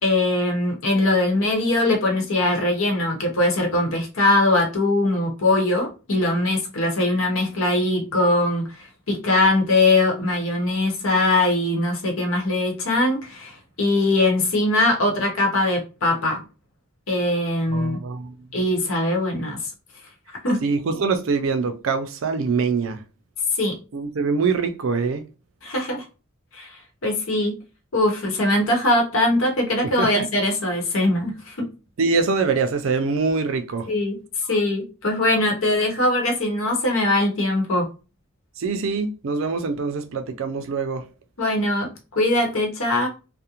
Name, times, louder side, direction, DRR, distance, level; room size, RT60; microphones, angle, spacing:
voice 1, 0.0-16.4 17.1-18.0 18.5-19.7 20.4-20.7 23.6-23.8 25.6-26.0 26.5-26.8 27.0-27.6 27.9-31.7 33.9-34.2 34.5-37.9 41.4-41.9 42.2-43.1, left 2 dB, 75° left, 0.9 m, -21 dB
voice 2, 17.7-18.3 20.6-23.0 23.9-25.2 30.0-30.2 32.0-33.9 38.6-41.0, right 4 dB, 70° right, 0.4 m, -24 dB
2.4 x 2.1 x 2.8 m
head